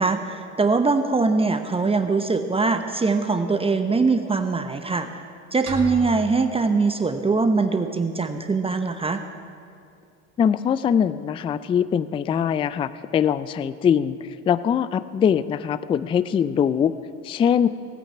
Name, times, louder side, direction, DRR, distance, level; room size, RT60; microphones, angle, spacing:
voice 1, 0.0-5.2 5.5-9.2, right 4 dB, 15° right, 7 dB, 0.9 m, -22 dB
sound 1, 5.7-7.6, right 1 dB, 40° right, 3.0 m, -36 dB
voice 2, 10.4-16.9 17.2-17.7, left 8 dB, 15° left, 16 dB, 0.3 m, -22 dB
17.5 x 9.0 x 8.5 m, 2.4 s
hypercardioid pair, 90°, 39 cm